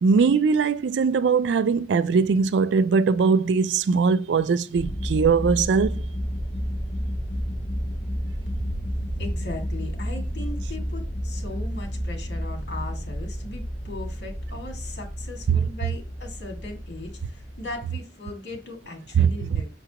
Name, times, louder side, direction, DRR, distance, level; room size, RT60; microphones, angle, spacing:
voice 1, 0.0-5.9 15.5-15.6 19.2-19.3, right 5 dB, 85° right, 0.4 m, -20 dB
sound 1, 4.8-17.9, equal, 25° left, 0.9 m, -31 dB
voice 2, 9.2-19.7, left 1 dB, 70° left, 2.0 m, -38 dB
5.9 x 5.8 x 2.9 m
head